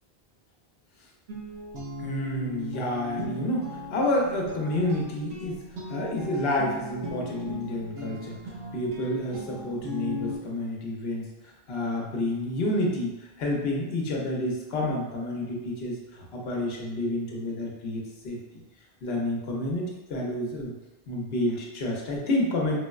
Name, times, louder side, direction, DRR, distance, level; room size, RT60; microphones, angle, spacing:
Guitar, 1.3-10.4, left 1 dB, 80° right, 0.9 m, -38 dB
voice 1, 2.0-5.6 5.9-8.4 8.7-13.1 13.4-18.6 19.0-20.7 21.1-22.8, left 1 dB, 70° left, -1 dB, 0.9 m, -29 dB
4.5 x 2.1 x 2.3 m, 1.1 s
omnidirectional pair, 1.1 m